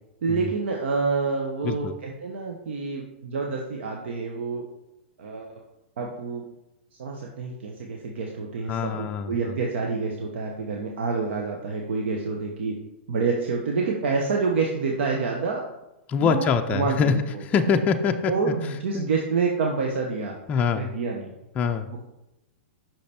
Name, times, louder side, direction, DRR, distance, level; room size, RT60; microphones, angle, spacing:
voice 1, 0.2-4.6 5.2-5.6 6.0-6.4 7.0-12.8 13.1-15.6 16.2-17.4 18.3-20.4 20.7-21.3 21.9-22.0, right 4 dB, 70° right, 0 dB, 0.9 m, -28 dB
voice 2, 1.6-1.9 8.7-9.3 16.1-17.1 17.4-18.3 18.9-19.1 20.5-20.9 21.6-21.9, left 6 dB, 25° left, 5 dB, 0.4 m, -24 dB
5.7 x 5.2 x 4.3 m, 0.92 s
hypercardioid pair, 130°, 6 cm